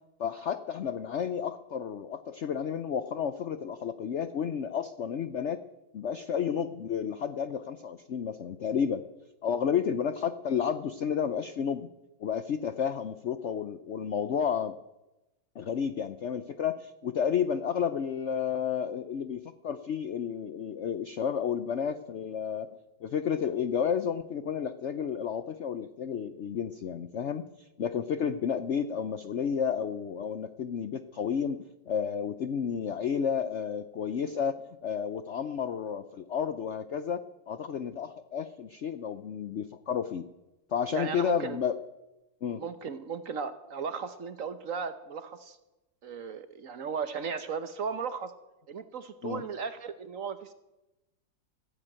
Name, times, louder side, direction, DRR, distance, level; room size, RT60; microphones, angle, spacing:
voice 1, 0.2-5.6 5.9-9.0 9.4-11.9 12.2-14.7 15.6-22.7 23.0-34.6 34.8-40.2 40.7-41.8 42.4-42.6 49.2-49.4, left 7 dB, 70° left, 12 dB, 0.6 m, -31 dB
voice 2, 40.9-41.6 42.6-45.6 46.0-48.3 48.7-50.5, right 6 dB, 55° right, 11 dB, 1.1 m, -36 dB
14.5 x 10.0 x 8.8 m, 1.0 s
omnidirectional pair, 2.0 m